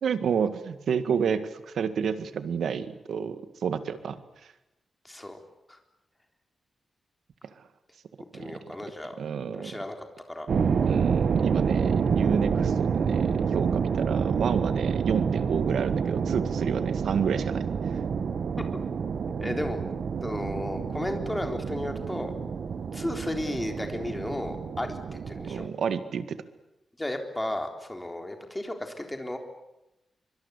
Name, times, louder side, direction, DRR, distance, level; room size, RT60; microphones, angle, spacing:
voice 1, 0.0-4.2 8.3-8.6 9.2-9.8 10.9-17.6 25.5-26.4, right 7 dB, 90° right, 11 dB, 1.9 m, -30 dB
voice 2, 5.0-5.4 5.7-5.8 8.3-9.2 9.5-10.5 18.7-18.8 19.4-19.8 20.2-22.3 22.9-25.7 27.0-29.4, left 1 dB, 10° left, 5 dB, 3.8 m, -34 dB
sound 1, 10.5-25.7, right 6 dB, 60° right, 1.2 m, -28 dB
24.5 x 24.0 x 8.4 m, 0.94 s
wide cardioid pair, 155°, 0 cm